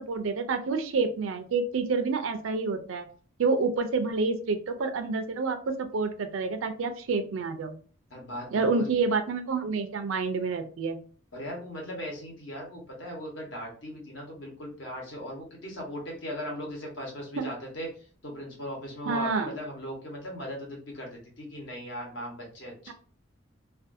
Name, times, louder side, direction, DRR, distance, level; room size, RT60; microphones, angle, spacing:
voice 1, 0.1-3.1 3.4-7.8 8.5-11.0 17.4-17.5 19.1-19.5 22.9-23.0, right 4 dB, 80° right, 9 dB, 0.4 m, -28 dB
voice 2, 8.1-8.9 11.3-17.9 18.2-22.9, equal, 65° left, -1 dB, 1.0 m, -38 dB
2.5 x 2.3 x 2.5 m, 0.42 s
head